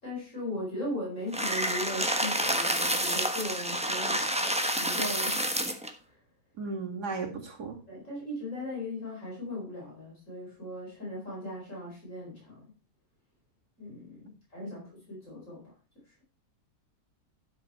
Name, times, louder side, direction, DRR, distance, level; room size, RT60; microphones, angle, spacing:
voice 1, 0.0-5.6 6.0-6.2 7.9-12.6 13.8-16.2, left 1 dB, 50° left, -4 dB, 5.3 m, -38 dB
sound 1, 1.3-5.9, right 1 dB, 5° right, 1.0 m, -29 dB
voice 2, 6.6-7.8 14.7-14.8, right 4 dB, 85° right, 1 dB, 2.8 m, -35 dB
12.0 x 6.5 x 4.4 m, 0.35 s
omnidirectional pair, 1.7 m